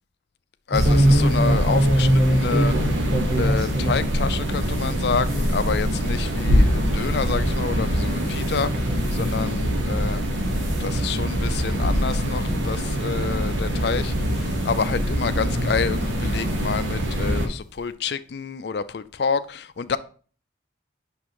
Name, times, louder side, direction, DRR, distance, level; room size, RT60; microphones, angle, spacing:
voice 1, 0.7-2.8 3.4-10.2 10.8-20.0, left 5 dB, 55° left, 0.4 m, -28 dB
sound 1, 0.7-4.0 4.5-8.6 9.0-9.4 9.9-10.2 10.5-10.8 11.4-11.5 11.9-12.0 13.1-13.2 14.0-14.8 16.0-16.1 16.5-16.6 16.9-17.0, right 1 dB, 40° right, 1.6 m, -23 dB
sound 2, 0.7-17.5, equal, 80° right, 1.3 m, -24 dB
8.2 x 6.1 x 3.0 m
head